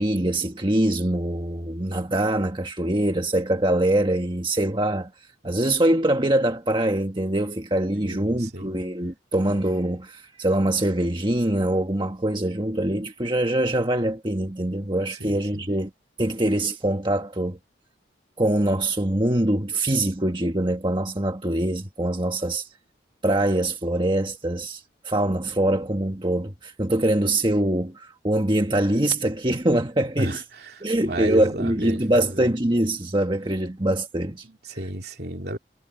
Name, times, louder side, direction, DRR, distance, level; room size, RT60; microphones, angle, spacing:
voice 1, 0.0-5.1 5.4-15.9 16.2-17.6 18.4-22.7 23.2-30.4 30.8-34.4, right 1 dB, 25° right, 1.5 m, -23 dB
voice 2, 7.9-8.8 15.2-15.7 30.1-32.5 34.4-35.6, right 1 dB, 60° right, 3.2 m, -33 dB
head